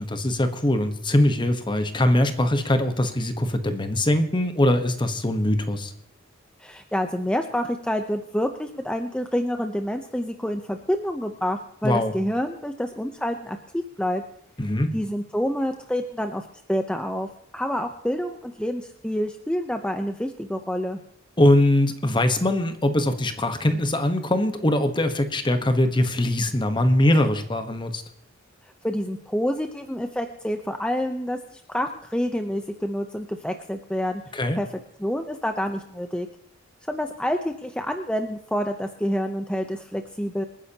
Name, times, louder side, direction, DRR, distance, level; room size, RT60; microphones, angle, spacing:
voice 1, 0.1-5.9 11.8-12.1 14.6-14.9 21.4-28.0 34.3-34.6, left 1 dB, 25° left, 8 dB, 1.1 m, -22 dB
voice 2, 6.6-14.2 14.9-17.3 17.5-21.0 28.8-34.2 34.6-34.7 35.0-36.3 36.9-40.4, equal, 5° left, 5 dB, 0.7 m, -28 dB
26.5 x 9.9 x 2.9 m, 0.75 s
head